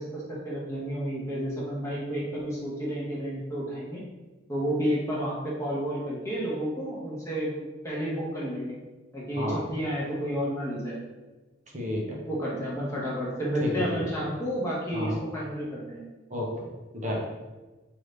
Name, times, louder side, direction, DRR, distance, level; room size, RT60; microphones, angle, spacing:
voice 1, 0.0-4.0 4.5-7.5 7.8-8.7 9.1-11.0 12.3-16.0, equal, 15° left, -6 dB, 1.0 m, -31 dB
voice 2, 9.3-9.6 11.7-12.2 13.6-14.3 14.9-15.1 16.3-16.7 16.9-17.2, equal, 35° right, -2 dB, 0.7 m, -31 dB
4.8 x 2.7 x 3.2 m, 1.2 s
head